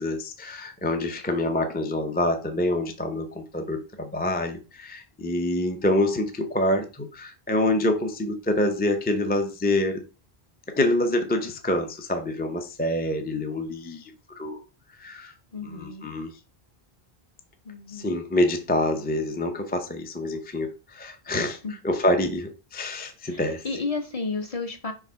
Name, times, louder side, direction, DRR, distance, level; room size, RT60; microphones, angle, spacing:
voice 1, 0.0-10.0 10.7-14.6 15.0-15.3 15.6-16.3 17.9-21.6 21.8-23.6, left 1 dB, 10° left, 0.6 m, -26 dB
voice 2, 15.5-16.1 17.6-18.2 21.6-21.7 23.3-24.9, left 4 dB, 40° left, 1.0 m, -32 dB
4.7 x 3.6 x 5.5 m
omnidirectional pair, 1.0 m